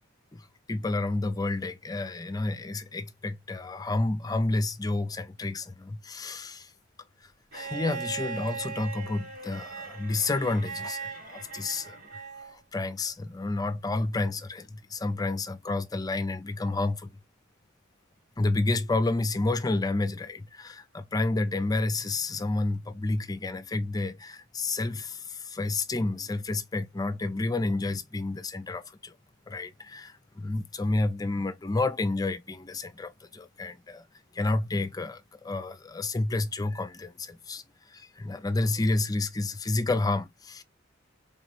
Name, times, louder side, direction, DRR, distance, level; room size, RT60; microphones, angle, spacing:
voice 1, 0.3-6.7 7.5-12.2 12.5-17.1 18.4-29.1 29.5-34.1 34.3-40.6, left 2 dB, 20° left, 0.5 m, -30 dB
Bowed string instrument, 7.5-12.6 14.0-14.1, right 6 dB, 90° right, 2.5 m, -39 dB
3.7 x 3.1 x 4.1 m
head